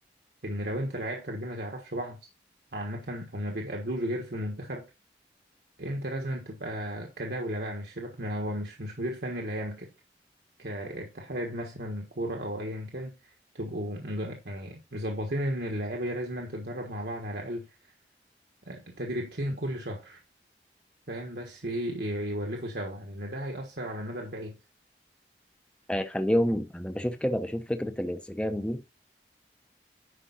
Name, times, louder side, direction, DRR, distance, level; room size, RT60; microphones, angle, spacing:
voice 1, 0.4-2.2 2.7-4.9 5.8-9.9 10.6-17.9 18.7-20.2 21.1-24.6, equal, 65° right, 1.4 m, -34 dB
voice 2, 25.9-28.8, equal, 5° left, 0.7 m, -28 dB
10.0 x 5.2 x 4.0 m
head